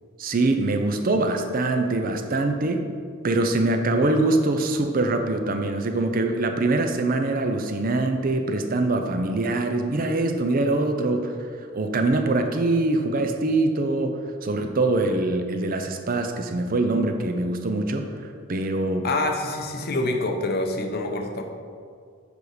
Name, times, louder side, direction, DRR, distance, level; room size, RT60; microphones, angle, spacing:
voice 1, 0.2-2.9 3.2-11.3 11.7-18.1 18.5-19.1, right 2 dB, 45° right, 6 dB, 0.5 m, -23 dB
voice 2, 19.0-21.4, left 2 dB, 50° left, 4 dB, 0.7 m, -26 dB
7.1 x 4.7 x 4.9 m, 2.2 s
head